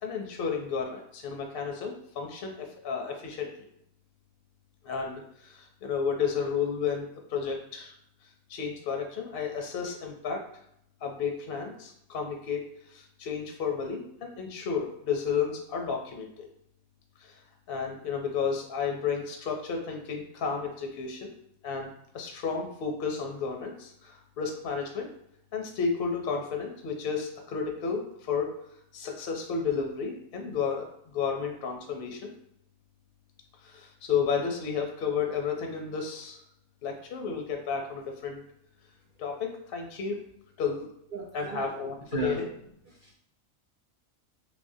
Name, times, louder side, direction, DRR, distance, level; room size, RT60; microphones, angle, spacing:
voice 1, 0.0-3.7 4.8-7.9 8.5-10.4 11.0-16.5 17.2-17.3 17.7-21.3 21.6-25.1 25.5-28.6 28.9-30.9 31.1-32.3 33.6-36.4 36.8-38.4 39.2-40.2 40.6-40.9 41.3-42.5, left 6 dB, 60° left, 2 dB, 0.6 m, -32 dB
voice 2, 41.1-41.7 42.1-42.4 42.9-43.2, right 4 dB, 90° right, -2 dB, 0.4 m, -35 dB
3.4 x 3.0 x 2.6 m, 0.72 s
omnidirectional pair, 1.5 m